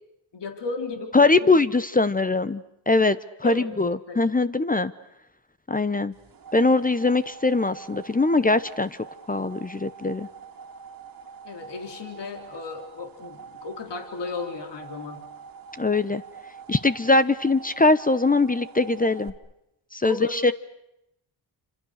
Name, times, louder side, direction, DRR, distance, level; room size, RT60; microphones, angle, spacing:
voice 1, 0.3-1.6 3.4-3.7 4.1-4.2 11.4-15.3 20.0-20.5, left 3 dB, 60° left, 5 dB, 3.9 m, -34 dB
voice 2, 1.1-4.9 5.7-6.1 6.5-9.0 9.3-10.3 15.8-16.2 16.7-19.3 19.9-20.5, left 3 dB, 20° left, 14 dB, 0.9 m, -22 dB
sound 1, 6.1-19.3, right 6 dB, 45° right, 2.4 m, -45 dB
28.5 x 26.5 x 6.6 m, 0.82 s
cardioid pair, 75°, 48 cm